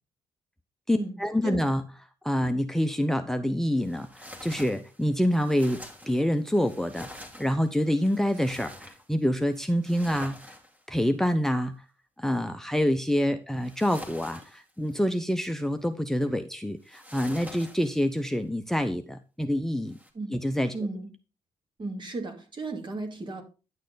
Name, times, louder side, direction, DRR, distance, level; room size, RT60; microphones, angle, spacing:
voice 1, 0.9-1.8 2.2-10.5 10.9-11.8 12.2-20.0 20.3-20.7, equal, 5° left, 10 dB, 0.8 m, -27 dB
sound 1, 3.8-11.1 13.6-15.2 16.8-18.2 19.9-20.1, left 1 dB, 10° right, 2.4 m, -47 dB
voice 2, 20.7-21.1 21.8-23.4, right 3 dB, 40° right, 4 dB, 2.6 m, -34 dB
10.5 x 6.4 x 4.0 m, 0.33 s
supercardioid pair, 60°, 12 cm